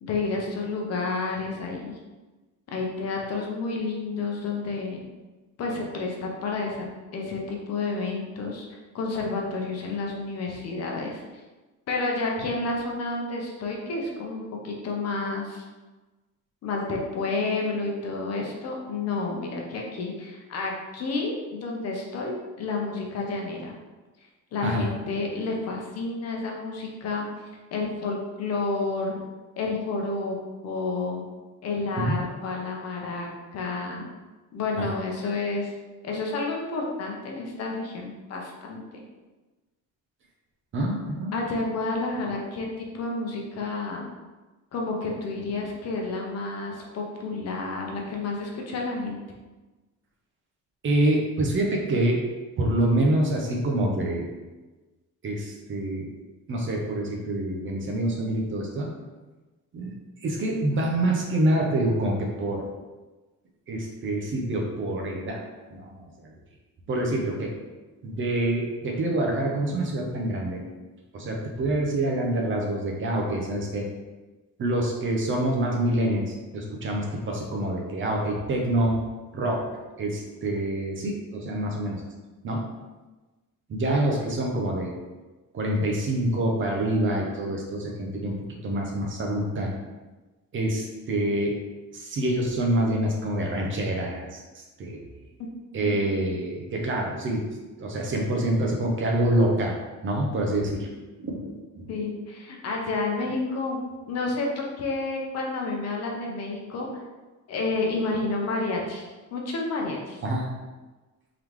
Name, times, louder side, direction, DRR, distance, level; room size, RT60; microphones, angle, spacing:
voice 1, 0.0-2.0 2.7-5.0 5.6-6.9 7.1-8.6 8.9-11.2 11.9-15.6 16.6-23.7 24.5-27.3 27.7-29.2 29.6-30.4 30.6-31.2 31.6-34.1 34.5-35.7 36.0-38.8 41.3-44.1 44.7-49.2 95.8-95.9 101.9-103.8 104.1-107.0 107.5-109.0 109.3-110.2, left 3 dB, 50° left, 0 dB, 0.8 m, -30 dB
voice 2, 40.7-41.4 50.8-52.2 52.6-54.3 55.2-56.1 56.5-58.9 59.7-59.9 60.2-62.6 63.7-65.4 65.7-66.1 66.9-67.5 68.0-70.6 71.1-73.9 74.6-79.6 80.0-82.0 82.4-82.7 83.7-84.9 85.5-88.4 88.6-89.7 90.5-91.6 91.9-95.0 95.7-97.5 97.8-99.7 100.0-100.9 101.2-101.9 110.2-110.5, right 1 dB, 40° right, 0 dB, 0.7 m, -26 dB
3.8 x 3.4 x 3.1 m, 1.2 s
cardioid pair, 165°, 32 cm